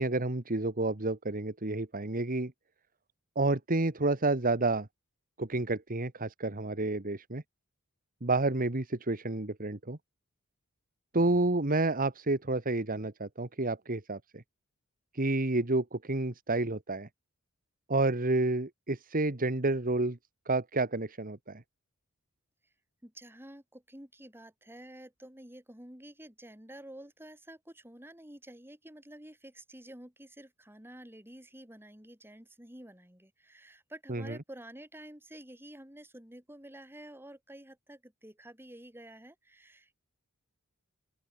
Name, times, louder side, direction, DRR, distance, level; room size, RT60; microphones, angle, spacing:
voice 1, 0.0-2.5 3.3-4.9 5.4-7.4 8.2-10.0 11.1-14.4 15.1-17.1 17.9-20.2 20.4-21.6 34.1-34.4, right 2 dB, 40° right, 1.6 m, -30 dB
voice 2, 23.0-40.0, right 1 dB, 10° right, 5.1 m, -50 dB
open air
head